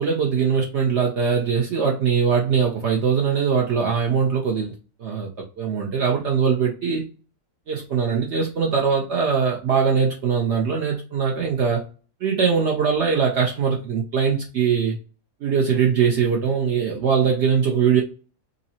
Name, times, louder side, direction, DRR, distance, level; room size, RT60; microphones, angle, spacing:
voice 1, 0.0-4.7 5.0-5.3 5.6-7.0 7.7-11.8 12.2-15.0 15.4-18.0, right 6 dB, 90° right, 0.6 m, -21 dB
5.3 x 2.0 x 2.7 m
omnidirectional pair, 1.9 m